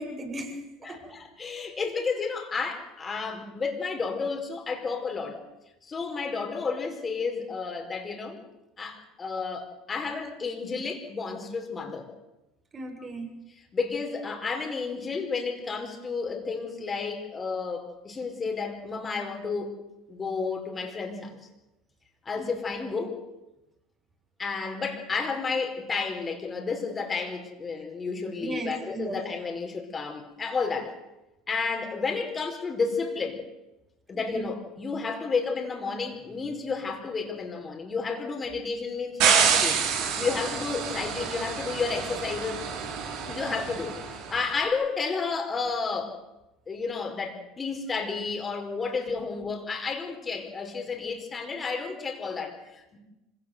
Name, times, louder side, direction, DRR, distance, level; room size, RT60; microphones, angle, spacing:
voice 1, 0.0-1.1 12.7-13.3 22.4-22.5 28.4-29.2 34.3-34.4, right 2 dB, 30° right, 3 dB, 6.9 m, -36 dB
voice 2, 0.8-5.4 5.8-8.4 8.8-12.1 13.6-19.7 20.1-21.4 22.2-23.2 24.4-31.0 31.5-33.4 34.1-39.8 40.2-42.6 43.3-46.2 46.7-53.0, left 4 dB, 25° left, 4 dB, 5.0 m, -31 dB
sound 1, 39.2-44.3, right 7 dB, 65° right, 5.6 m, -27 dB
25.5 x 17.5 x 8.1 m, 0.98 s
hypercardioid pair, 80°, 0 cm